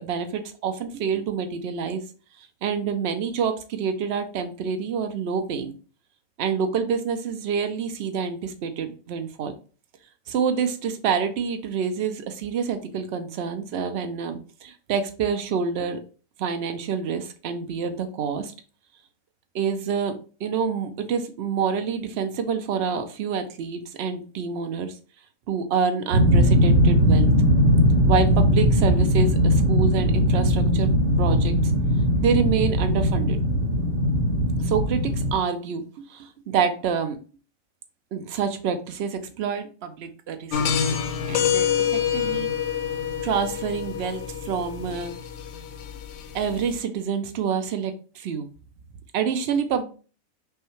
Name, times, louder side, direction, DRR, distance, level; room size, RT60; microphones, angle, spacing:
voice 1, 0.0-2.0 2.4-5.7 6.4-9.5 10.3-16.0 16.4-18.5 19.5-25.0 25.5-27.3 28.1-30.9 31.2-31.7 32.2-33.4 34.6-37.2 38.1-41.0 41.3-42.5 43.2-45.1 46.3-48.5 49.1-49.8, right 6 dB, 60° right, 8 dB, 0.7 m, -27 dB
sound 1, 26.1-35.3, equal, 90° right, 1.2 m, -19 dB
sound 2, 40.5-46.8, left 8 dB, 75° left, 1.0 m, -27 dB
5.4 x 2.2 x 3.0 m, 0.37 s
omnidirectional pair, 1.4 m